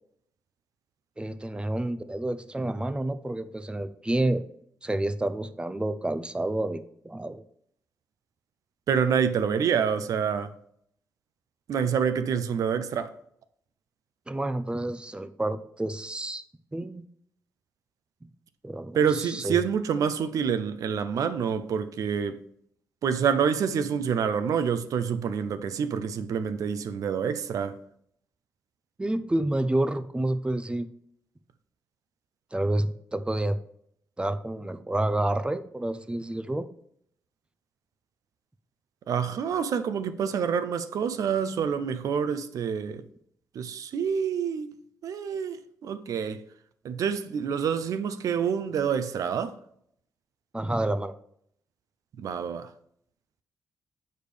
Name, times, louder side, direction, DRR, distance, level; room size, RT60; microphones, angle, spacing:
voice 1, 1.2-4.4 4.8-7.4 14.3-16.4 16.7-17.0 18.6-19.6 29.0-30.9 32.5-33.6 34.2-36.7 50.5-51.1, right 1 dB, 15° right, 0.5 m, -29 dB
voice 2, 8.9-10.5 11.7-13.1 18.9-22.4 23.0-27.8 39.1-43.0 43.5-44.7 45.0-46.4 46.8-49.6 52.2-52.7, right 7 dB, 70° right, 0.5 m, -27 dB
6.7 x 5.0 x 3.3 m
supercardioid pair, 55°, 6 cm